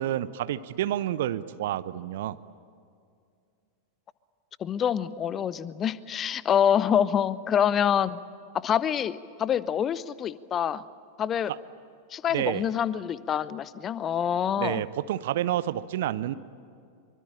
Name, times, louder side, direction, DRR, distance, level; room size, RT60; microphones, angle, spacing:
voice 1, 0.0-2.4 11.5-11.6 12.3-12.6 14.6-16.3, right 12 dB, 55° right, 15 dB, 0.8 m, -29 dB
voice 2, 4.6-8.2 8.5-10.8 11.2-11.5 12.1-14.8, left 9 dB, 25° left, 18 dB, 0.8 m, -26 dB
25.0 x 24.0 x 8.8 m, 2.3 s
figure-of-eight pair, 90°, 0 cm